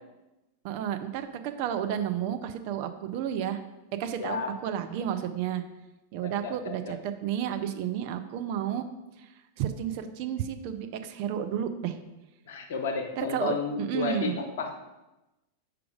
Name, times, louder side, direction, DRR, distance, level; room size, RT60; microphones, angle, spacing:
voice 1, 0.6-3.6 4.0-5.6 6.1-8.8 9.6-12.0 13.2-14.4, right 9 dB, 45° right, 8 dB, 0.4 m, -31 dB
voice 2, 4.2-4.5 6.2-7.0 12.5-14.7, left 4 dB, 55° left, 4 dB, 0.8 m, -32 dB
5.0 x 4.6 x 4.9 m, 1.0 s
figure-of-eight pair, 90°, 0 cm